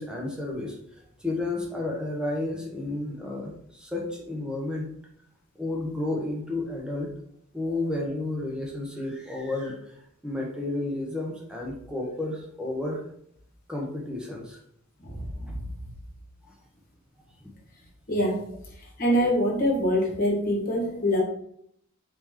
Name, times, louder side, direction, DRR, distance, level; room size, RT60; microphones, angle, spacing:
voice 1, 0.0-4.9 5.6-7.1 7.5-13.0 13.7-14.6 16.4-16.5 17.4-17.5, left 2 dB, 5° right, -2 dB, 0.8 m, -32 dB
voice 2, 15.0-15.7 18.1-18.4 19.0-21.2, equal, 40° left, -3 dB, 1.3 m, -24 dB
4.6 x 3.0 x 3.6 m, 0.70 s
head